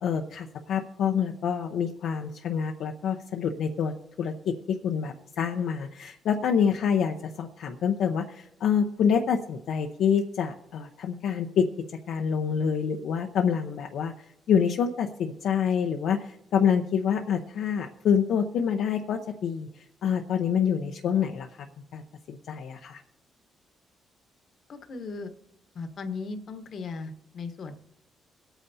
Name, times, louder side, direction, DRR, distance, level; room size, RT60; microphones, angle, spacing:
voice 1, 0.0-11.7 12.1-14.1 14.5-21.7 21.9-22.0 22.3-23.0, left 7 dB, 75° left, 2 dB, 0.7 m, -27 dB
voice 2, 24.7-25.3 25.7-27.7, left 4 dB, 55° left, 8 dB, 1.2 m, -37 dB
25.5 x 9.0 x 2.8 m, 0.86 s
cardioid pair, 90°, 0 cm